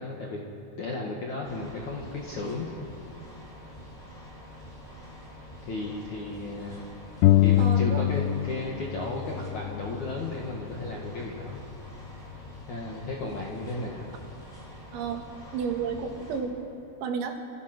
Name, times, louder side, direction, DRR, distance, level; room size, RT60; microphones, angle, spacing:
voice 1, 0.0-2.7 5.7-7.0 7.4-11.6 12.7-14.1, left 2 dB, 50° left, -2 dB, 2.8 m, -34 dB
sound 1, 1.4-16.4, equal, 5° left, 6.3 m, -46 dB
sound 2, 7.2-8.7 9.0-10.8, left 13 dB, 80° left, 3.0 m, -24 dB
voice 2, 7.6-8.0 14.9-15.2 15.5-16.6 17.0-17.4, right 6 dB, 75° right, 3 dB, 4.4 m, -31 dB
29.5 x 27.5 x 6.3 m, 3.0 s
omnidirectional pair, 5.5 m